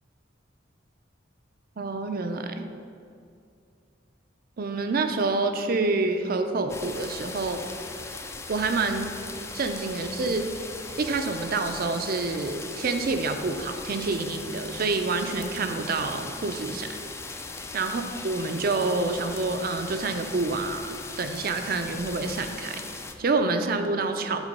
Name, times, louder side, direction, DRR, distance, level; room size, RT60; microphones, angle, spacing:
voice 1, 1.8-2.7 4.6-7.6 8.5-9.1 9.5-10.5 11.0-17.0 17.7-24.4, right 3 dB, 50° right, 7 dB, 0.5 m, -27 dB
sound 1, 6.7-23.1, left 3 dB, 15° left, 0.4 m, -39 dB
8.1 x 4.2 x 5.3 m, 2.4 s
head